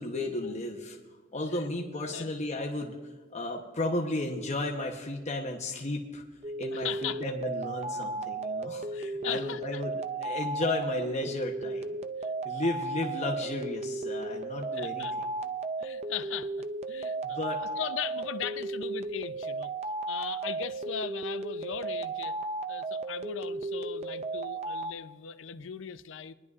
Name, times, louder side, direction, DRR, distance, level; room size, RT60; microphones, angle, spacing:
voice 1, 0.0-12.0 12.4-15.1 17.2-17.6, left 2 dB, 35° left, 0.9 m, -34 dB
sound 1, 6.4-24.9, right 3 dB, 35° right, 0.5 m, -35 dB
voice 2, 6.7-7.2 8.9-9.8 12.2-12.6 14.8-15.1 15.8-19.7 20.1-22.4 22.7-26.3, left 8 dB, 70° left, 0.5 m, -39 dB
22.5 x 11.0 x 2.4 m
head